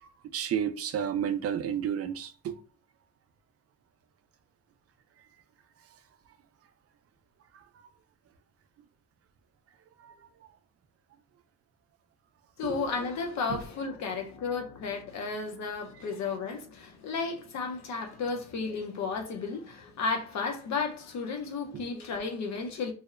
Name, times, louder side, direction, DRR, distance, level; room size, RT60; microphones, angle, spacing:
voice 1, 0.0-2.6 7.5-7.6 10.0-10.1 12.6-12.9 13.5-13.7 21.7-21.8, right 9 dB, 55° right, 0.4 m, -32 dB
voice 2, 12.6-22.9, left 4 dB, 65° left, 0.7 m, -33 dB
2.7 x 2.0 x 2.4 m
cardioid pair, 90°, 30 cm